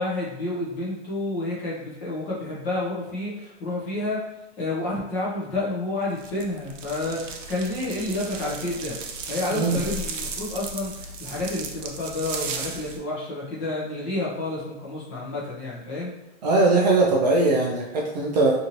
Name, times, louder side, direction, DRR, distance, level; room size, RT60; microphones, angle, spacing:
voice 1, 0.0-4.2 4.6-9.0 9.2-16.1, left 2 dB, 20° left, -5 dB, 0.6 m, -30 dB
sound 1, 6.2-13.0, right 4 dB, 80° right, 0.6 m, -35 dB
voice 2, 16.4-18.5, right 3 dB, 35° right, -2 dB, 0.4 m, -20 dB
2.7 x 2.6 x 2.8 m, 0.94 s
hypercardioid pair, 155°, 37 cm